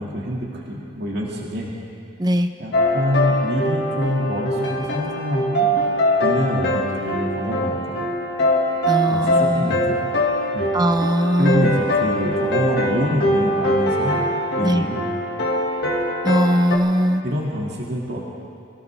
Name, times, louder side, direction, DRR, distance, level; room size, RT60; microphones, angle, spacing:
voice 1, 0.0-1.7 2.6-5.7 6.2-8.1 9.1-10.0 10.5-10.7 11.4-14.2 14.6-15.1 17.2-18.3, equal, 65° right, -3 dB, 2.1 m, -25 dB
voice 2, 2.2-2.5 8.9-9.7 10.7-11.7 14.6-14.9 16.2-17.2, equal, 25° right, 8 dB, 0.8 m, -20 dB
sound 1, 2.7-16.8, left 1 dB, 65° left, 2.0 m, -22 dB
24.5 x 16.5 x 3.5 m, 2.4 s
head